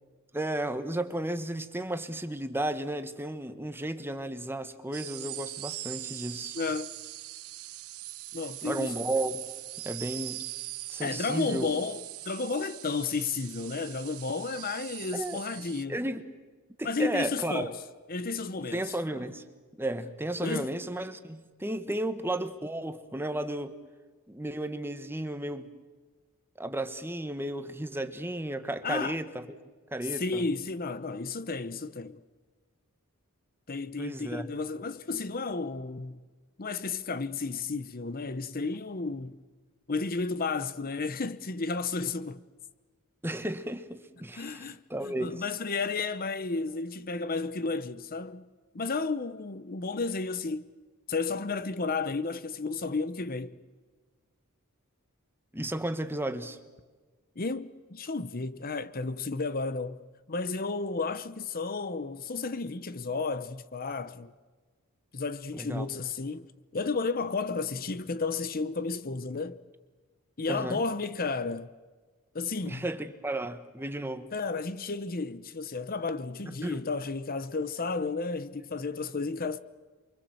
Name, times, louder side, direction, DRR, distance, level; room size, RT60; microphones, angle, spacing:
voice 1, 0.3-6.6 8.6-9.4 9.8-10.4 10.9-11.7 15.1-15.4 15.9-16.3 16.8-17.7 18.7-19.4 19.8-23.8 24.3-25.7 26.6-29.4 29.9-30.4 34.0-34.5 43.2-45.5 55.5-56.6 65.5-65.9 70.5-70.8 72.7-74.3 76.5-76.9, right 1 dB, 10° right, 1.4 m, -33 dB
sound 1, 4.9-15.8, right 16 dB, 80° right, 0.9 m, -41 dB
voice 2, 6.5-6.9 8.3-8.9 11.0-16.0 16.8-17.8 18.1-18.8 19.1-19.2 20.4-20.7 21.9-22.0 28.8-29.2 30.1-32.2 33.7-36.2 36.6-39.4 39.9-42.4 44.4-48.5 48.7-50.7 51.1-53.6 57.4-60.0 60.3-64.3 65.1-66.5 66.7-69.6 70.4-71.7 72.3-72.8 74.3-79.6, left 4 dB, 40° left, 0.8 m, -32 dB
29.0 x 24.5 x 7.8 m
head